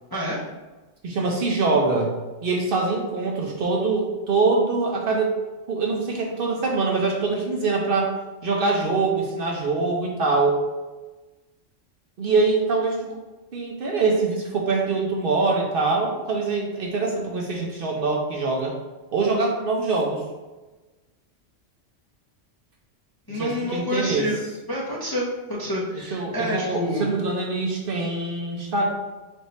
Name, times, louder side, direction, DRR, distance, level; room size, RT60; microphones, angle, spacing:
voice 1, 0.1-0.4 23.3-24.4 24.7-27.1, left 1 dB, 30° left, -6 dB, 0.4 m, -28 dB
voice 2, 1.0-5.3 5.7-8.1 8.4-10.6 12.2-13.2 13.5-18.7 19.1-20.2 23.3-24.3 26.1-28.9, right 3 dB, 55° right, -1 dB, 0.7 m, -24 dB
3.4 x 2.7 x 4.1 m, 1.2 s
omnidirectional pair, 1.2 m